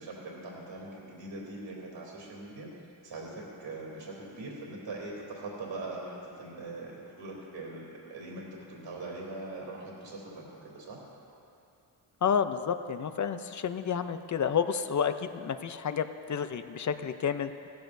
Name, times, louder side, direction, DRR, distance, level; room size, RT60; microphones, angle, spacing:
voice 1, 0.0-2.7 3.0-11.0, right 2 dB, 65° right, -4 dB, 3.2 m, -42 dB
voice 2, 12.2-17.5, left 7 dB, 40° left, 10 dB, 0.5 m, -30 dB
17.0 x 15.0 x 2.7 m, 2.7 s
cardioid pair, 100°, 46 cm